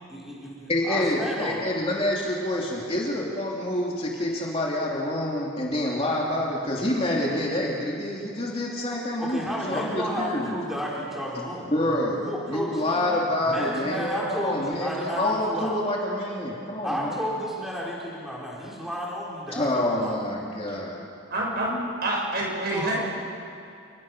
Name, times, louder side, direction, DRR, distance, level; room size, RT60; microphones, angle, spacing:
voice 1, 0.1-1.6 9.2-13.0 13.4-15.2 15.5-15.8 16.8-20.2 22.7-23.0, equal, ahead, -5 dB, 4.3 m, -32 dB
voice 2, 0.7-10.6 11.7-17.2 19.5-21.1, left 1 dB, 30° left, -3 dB, 2.9 m, -27 dB
voice 3, 21.3-21.8 22.0-23.0, right 1 dB, 45° right, -2 dB, 6.5 m, -27 dB
30.0 x 19.5 x 6.2 m, 2.5 s
head